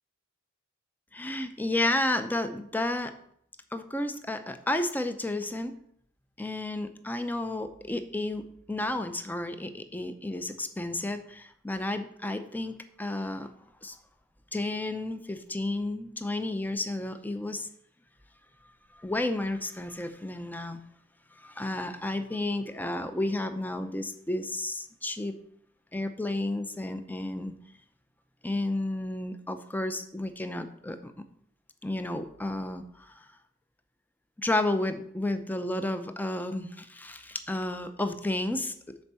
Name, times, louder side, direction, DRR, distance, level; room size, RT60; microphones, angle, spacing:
voice 1, 1.1-3.1 3.7-5.7 6.4-13.5 13.8-14.0 14.5-17.7 19.0-20.8 21.4-25.3 25.9-27.5 28.4-31.1 31.8-33.3 34.4-38.7, left 1 dB, 10° left, 9 dB, 0.6 m, -32 dB
7.0 x 4.6 x 6.8 m, 0.67 s
head